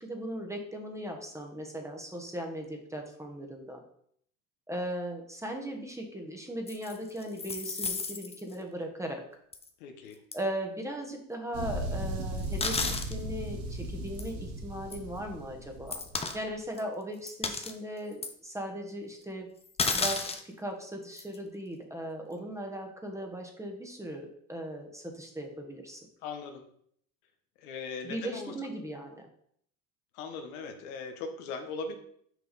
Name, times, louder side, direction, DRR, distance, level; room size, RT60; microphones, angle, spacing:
voice 1, 0.0-3.8 4.7-9.2 10.3-16.0 16.3-19.5 19.9-26.1 28.0-29.3, right 1 dB, 5° right, 2 dB, 1.1 m, -38 dB
sound 1, 6.7-8.5 9.5-9.7 10.3-10.4 12.4-13.1 14.2-14.3 14.9-15.0 15.9-16.4 16.8-16.9 17.3-17.7 18.2-18.3 19.8-20.4 21.2-21.4, left 4 dB, 15° left, 0.6 m, -32 dB
voice 2, 9.8-10.2 26.2-26.6 27.6-28.5 30.1-31.9, left 4 dB, 75° left, 6 dB, 1.2 m, -39 dB
sound 2, 11.5-16.4, right 1 dB, 70° right, 2.1 m, -37 dB
6.1 x 4.7 x 4.2 m, 0.66 s
supercardioid pair, 105°, 45 cm